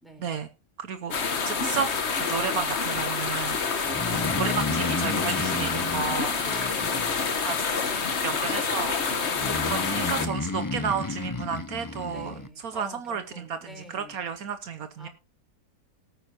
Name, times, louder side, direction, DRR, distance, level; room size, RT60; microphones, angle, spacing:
voice 1, 0.0-0.3 6.4-8.3 9.1-9.7 12.1-14.3 15.0-15.1, equal, ahead, 4 dB, 4.1 m, -46 dB
voice 2, 0.8-3.6 4.3-6.4 7.4-7.9 8.2-9.0 9.6-15.1, right 6 dB, 70° right, 9 dB, 1.3 m, -32 dB
sound 1, 1.1-10.3, left 5 dB, 45° left, 1.5 m, -27 dB
Breathing, 3.9-7.6 9.4-12.5, left 2 dB, 25° left, 0.5 m, -32 dB
18.0 x 9.3 x 2.9 m, 0.28 s
omnidirectional pair, 1.6 m